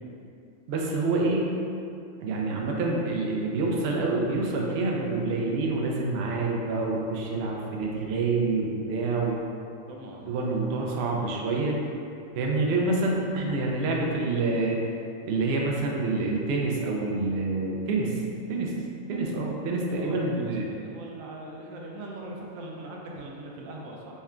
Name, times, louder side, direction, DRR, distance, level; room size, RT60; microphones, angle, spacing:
voice 1, 0.7-1.5 2.2-9.4 10.2-11.8 12.4-14.8 15.2-18.2 18.5-18.8 19.1-20.7, right 3 dB, 65° right, -1 dB, 0.7 m, -27 dB
voice 2, 9.9-10.4 19.9-24.2, right 2 dB, 85° right, -2 dB, 1.0 m, -41 dB
4.2 x 3.3 x 2.4 m, 2.5 s
omnidirectional pair, 1.4 m